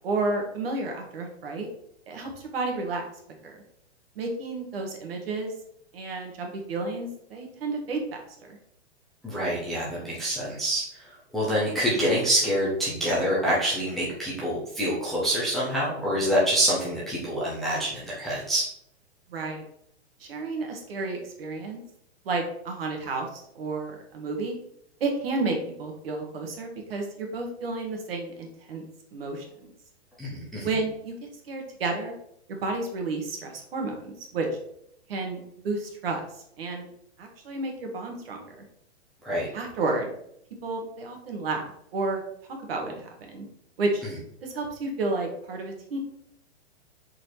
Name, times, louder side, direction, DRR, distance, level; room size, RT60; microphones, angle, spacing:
voice 1, 0.0-1.7 2.1-3.0 3.4-3.6 4.1-5.5 5.9-8.0 8.4-8.6 19.3-19.6 20.2-21.8 22.2-24.6 25.0-28.8 29.1-29.5 30.6-31.1 31.4-32.1 32.5-34.5 35.1-36.2 36.6-36.9 37.2-38.6 39.5-40.1 40.6-42.2 42.7-43.4 43.8-44.0 44.4-46.0, right 3 dB, 55° right, 2 dB, 1.7 m, -31 dB
voice 2, 9.2-18.7 30.2-30.7 39.2-39.5, equal, ahead, -9 dB, 0.8 m, -26 dB
5.0 x 4.3 x 4.5 m, 0.72 s
hypercardioid pair, 170°, 34 cm